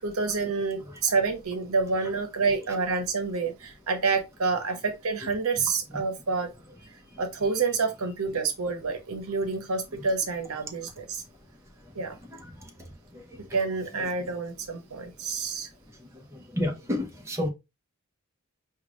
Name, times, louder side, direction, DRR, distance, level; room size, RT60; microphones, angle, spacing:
voice 1, 0.0-6.5 6.9-11.2 11.9-12.2 13.5-15.7, right 4 dB, 75° right, 0.9 m, -28 dB
voice 2, 16.5-17.5, left 1 dB, 15° right, 0.8 m, -30 dB
5.2 x 2.4 x 3.0 m
head